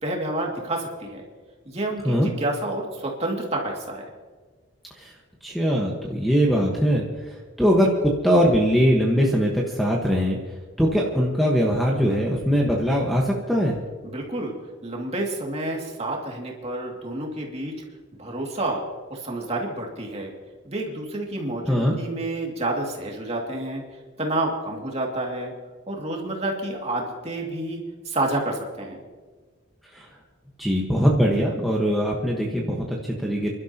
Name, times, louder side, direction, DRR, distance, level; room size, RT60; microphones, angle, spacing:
voice 1, 0.0-1.2 1.7-4.1 14.0-14.5 14.8-17.7 18.2-18.8 19.1-20.3 20.6-23.8 24.2-25.5 25.9-27.8 28.0-29.0, right 2 dB, 30° right, -1 dB, 2.4 m, -29 dB
voice 2, 5.4-10.4 10.8-13.8 21.7-22.0 29.9-30.1 30.6-33.5, equal, ahead, -2 dB, 1.4 m, -21 dB
29.0 x 12.0 x 3.0 m, 1.4 s
head